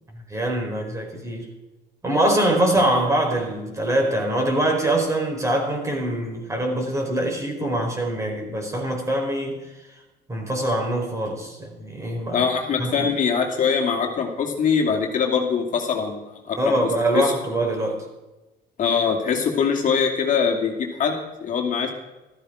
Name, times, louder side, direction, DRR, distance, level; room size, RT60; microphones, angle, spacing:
voice 1, 0.1-1.5 2.0-9.6 10.3-12.4 12.8-13.1 16.6-18.1, right 1 dB, 20° right, 2 dB, 4.5 m, -24 dB
voice 2, 12.3-16.7 17.1-17.4 18.8-21.9, left 6 dB, 50° left, 1 dB, 2.5 m, -23 dB
14.5 x 13.5 x 5.0 m, 1.1 s
cardioid pair, 110°, 17 cm